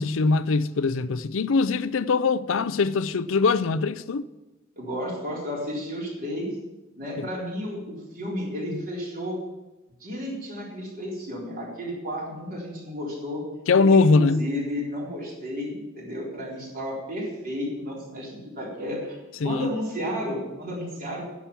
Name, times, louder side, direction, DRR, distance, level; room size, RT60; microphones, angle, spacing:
voice 1, 0.0-4.3 7.2-7.3 13.7-14.4 19.4-19.7, left 4 dB, 70° left, 0.5 m, -22 dB
voice 2, 4.8-6.5 7.0-9.4 10.0-13.4 13.8-19.2 19.4-21.2, equal, 45° right, 3.8 m, -32 dB
10.0 x 7.5 x 7.0 m
head